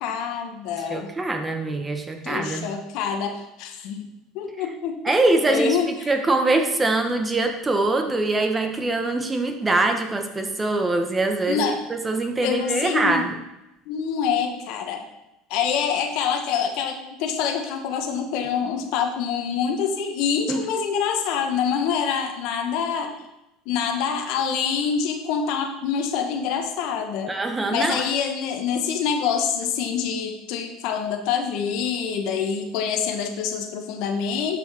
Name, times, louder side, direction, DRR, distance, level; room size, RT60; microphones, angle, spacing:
voice 1, 0.0-1.1 2.2-5.2 5.5-6.1 11.5-11.8 12.4-13.3 13.9-15.1 15.5-23.2 23.7-27.3 27.7-34.6, left 6 dB, 65° left, 6 dB, 1.0 m, -26 dB
voice 2, 0.9-2.7 5.0-5.8 6.1-13.3 20.5-20.6 27.3-28.1, right 2 dB, 20° right, 6 dB, 1.1 m, -23 dB
11.5 x 5.2 x 3.5 m, 0.91 s
supercardioid pair, 90°, 0 cm